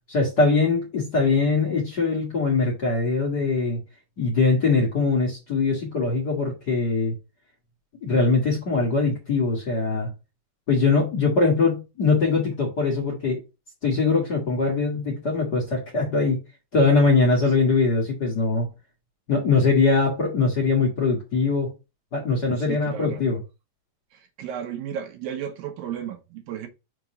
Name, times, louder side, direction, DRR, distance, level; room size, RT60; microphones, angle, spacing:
voice 1, 0.1-3.8 4.2-7.1 8.0-10.1 10.7-13.4 13.8-16.4 16.7-18.7 19.3-21.7 22.1-23.4, left 4 dB, 40° left, 1.7 m, -22 dB
voice 2, 22.6-23.2 24.1-26.7, right 9 dB, 85° right, 2.8 m, -34 dB
6.1 x 3.9 x 5.0 m
omnidirectional pair, 3.9 m